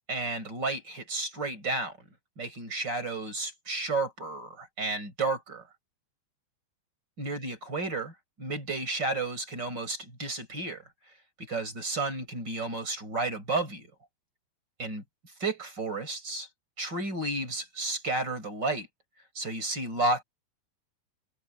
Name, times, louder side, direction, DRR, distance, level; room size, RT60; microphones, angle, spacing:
voice 1, 0.1-2.0 2.4-5.6 7.2-10.8 11.4-13.9 14.8-15.0 15.4-16.5 16.8-18.9 19.3-20.2, right 2 dB, 20° right, 6.1 m, -32 dB
omnidirectional pair, 5.7 m